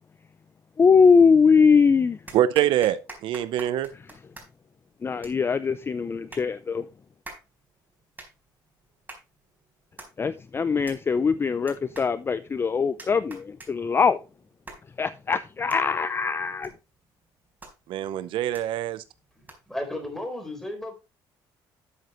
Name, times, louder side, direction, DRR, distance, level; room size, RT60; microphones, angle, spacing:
voice 1, 0.8-2.2 5.0-6.9 10.2-14.2 15.0-16.7, left 5 dB, 25° left, 0.5 m, -21 dB
sound 1, 2.3-19.8, right 2 dB, 20° right, 4.4 m, -49 dB
voice 2, 2.3-3.9 17.9-19.0, right 12 dB, 75° right, 0.7 m, -24 dB
voice 3, 19.7-20.9, left 1 dB, 5° left, 4.2 m, -33 dB
12.5 x 7.6 x 3.1 m
cardioid pair, 105°, 9 cm